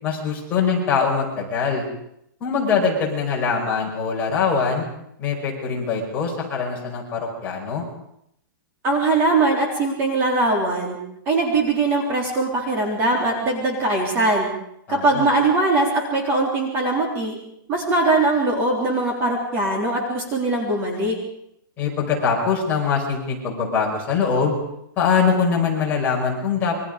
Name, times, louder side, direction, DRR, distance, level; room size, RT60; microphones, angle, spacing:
voice 1, 0.0-1.8 2.4-4.9 5.2-7.8 14.9-15.2 21.8-24.5 25.0-26.8, left 5 dB, 15° left, -2 dB, 5.1 m, -22 dB
voice 2, 8.8-11.0 11.3-14.5 14.9-17.4 17.7-21.2, right 2 dB, 20° right, 0 dB, 3.7 m, -21 dB
27.5 x 24.0 x 5.2 m, 0.78 s
hypercardioid pair, 180°, 12 cm